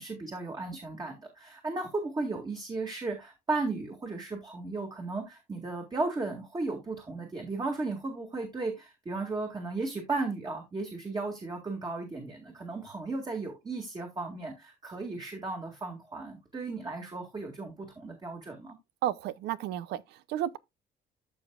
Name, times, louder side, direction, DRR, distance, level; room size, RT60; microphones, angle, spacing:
voice 1, 0.0-18.8, right 3 dB, 25° right, 2.1 m, -35 dB
voice 2, 19.0-20.6, right 12 dB, 80° right, 0.7 m, -32 dB
13.5 x 5.4 x 2.4 m
cardioid pair, 110°, 17 cm